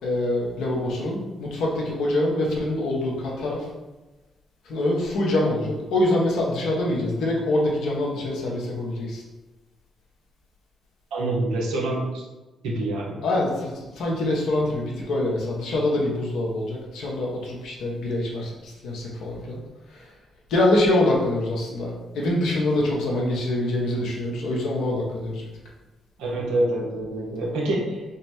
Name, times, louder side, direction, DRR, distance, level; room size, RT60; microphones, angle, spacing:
voice 1, 0.0-3.6 4.7-9.2 13.2-19.6 19.9-20.0 20.5-25.4, left 1 dB, 80° left, -3 dB, 1.1 m, -25 dB
voice 2, 11.1-12.2 12.6-13.2 26.2-28.0, right 1 dB, 85° right, -2 dB, 1.0 m, -26 dB
5.1 x 2.1 x 4.3 m, 1.1 s
supercardioid pair, 55°, 0 cm